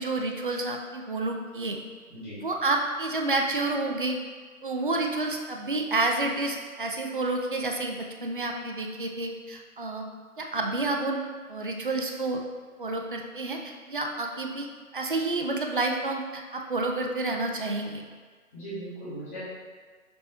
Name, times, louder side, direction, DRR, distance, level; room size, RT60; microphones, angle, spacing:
voice 1, 0.0-1.8 2.4-4.2 4.6-10.0 10.4-11.2 11.5-12.4 12.8-14.7 14.9-18.0, right 2 dB, 40° right, 2 dB, 0.5 m, -29 dB
voice 2, 2.1-2.4 18.5-19.4, right 1 dB, 10° left, -12 dB, 1.3 m, -38 dB
6.7 x 4.2 x 3.5 m, 1.5 s
figure-of-eight pair, 155°, 44 cm